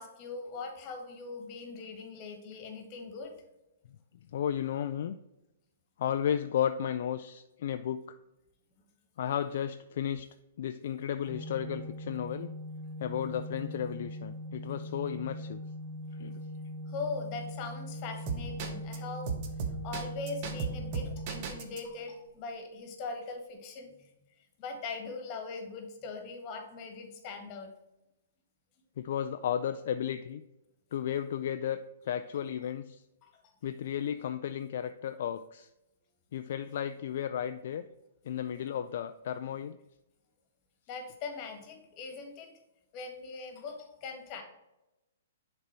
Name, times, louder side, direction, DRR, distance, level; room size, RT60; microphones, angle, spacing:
voice 1, 0.0-3.3 16.9-19.3 19.8-23.9 24.6-27.7 33.2-33.3 40.9-42.5 42.9-44.4, left 4 dB, 35° left, 5 dB, 1.5 m, -41 dB
voice 2, 4.3-5.2 6.0-8.2 9.2-10.3 10.6-12.5 13.0-15.6 16.1-16.4 29.0-30.4 30.9-33.0 33.6-35.7 36.3-37.8 38.2-39.8, left 9 dB, 60° left, 9 dB, 0.3 m, -33 dB
Organ, 11.3-22.2, equal, 15° right, 1.5 m, -41 dB
sound 1, 18.3-19.0 19.3-21.8, right 6 dB, 40° right, 1.0 m, -34 dB
6.7 x 4.0 x 4.4 m, 0.96 s
hypercardioid pair, 135°, 0 cm